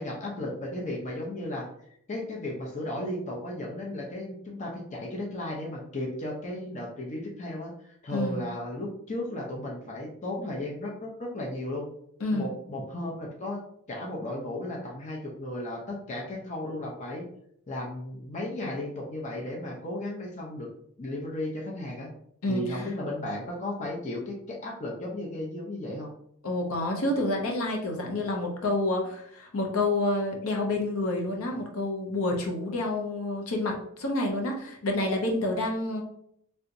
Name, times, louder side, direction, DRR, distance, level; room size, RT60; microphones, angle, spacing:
voice 1, 0.0-1.7 2.1-11.9 12.3-13.6 13.9-17.3 17.7-20.7 21.0-22.1 22.5-24.4 24.6-26.1, left 1 dB, 35° left, -1 dB, 0.6 m, -35 dB
voice 2, 22.4-22.8 26.4-36.0, left 2 dB, 70° left, 1 dB, 0.7 m, -28 dB
3.3 x 2.9 x 2.6 m, 0.70 s
head